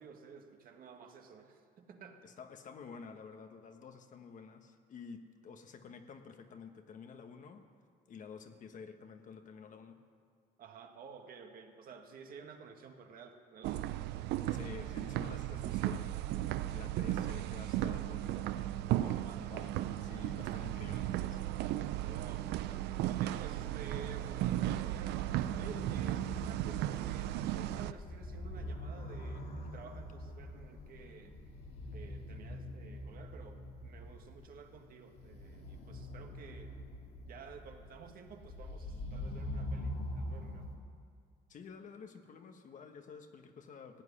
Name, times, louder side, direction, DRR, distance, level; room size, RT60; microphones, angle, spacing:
voice 1, 0.0-2.2 10.6-14.0 18.9-19.5 22.0-22.5 23.0-25.2 25.6-31.4 31.9-36.7 37.2-40.7, right 6 dB, 60° right, 4 dB, 1.7 m, -52 dB
voice 2, 2.2-7.7 8.1-10.0 14.5-16.1 16.7-18.5 18.9-21.4 41.5-44.0, left 6 dB, 50° left, 7 dB, 1.3 m, -50 dB
sound 1, 13.6-27.9, right 13 dB, 80° right, 0.5 m, -35 dB
sound 2, 23.9-40.8, left 1 dB, 75° left, 2.7 m, -44 dB
16.5 x 8.2 x 9.8 m, 2.1 s
cardioid pair, 110°, 17 cm